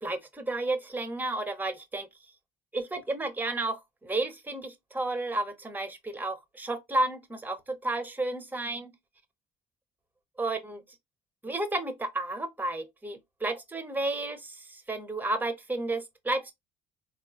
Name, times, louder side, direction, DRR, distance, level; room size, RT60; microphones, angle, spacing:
voice 1, 0.0-2.1 2.7-8.9 10.4-10.8 11.4-16.5, right 2 dB, 10° right, 0.6 m, -32 dB
3.6 x 2.4 x 2.4 m
cardioid pair, 110°, 17 cm